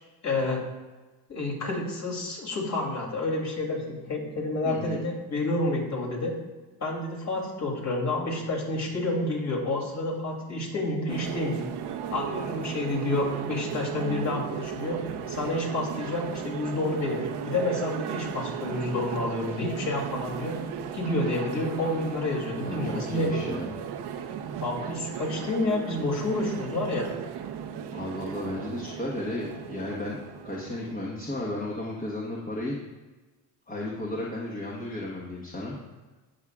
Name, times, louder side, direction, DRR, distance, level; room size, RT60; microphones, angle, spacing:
voice 1, 0.2-0.6 1.3-6.3 6.8-11.6 12.1-15.0 15.3-20.5 20.9-23.6 24.6-27.1, left 2 dB, 35° left, -1 dB, 2.8 m, -29 dB
voice 2, 4.6-5.0 22.6-23.7 27.9-32.8 33.7-35.8, left 1 dB, 20° left, -4 dB, 1.4 m, -34 dB
sound 1, 11.1-31.0, right 8 dB, 60° right, 0.9 m, -36 dB
17.0 x 6.5 x 2.4 m, 1.2 s
cardioid pair, 130°, 46 cm